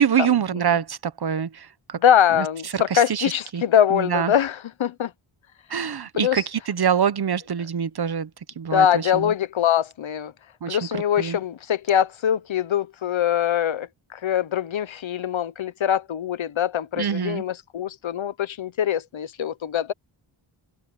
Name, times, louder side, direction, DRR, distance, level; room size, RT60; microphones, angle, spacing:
voice 1, 0.0-2.0 2.3-2.5 2.7-3.6 3.9-4.3 5.7-8.3 8.6-9.3 10.6-11.4 17.0-17.4, right 8 dB, 50° right, 0.9 m, -25 dB
voice 2, 2.0-5.1 6.2-6.4 8.7-10.3 10.7-19.9, left 9 dB, 70° left, 0.9 m, -23 dB
wide cardioid pair, 130°, 49 cm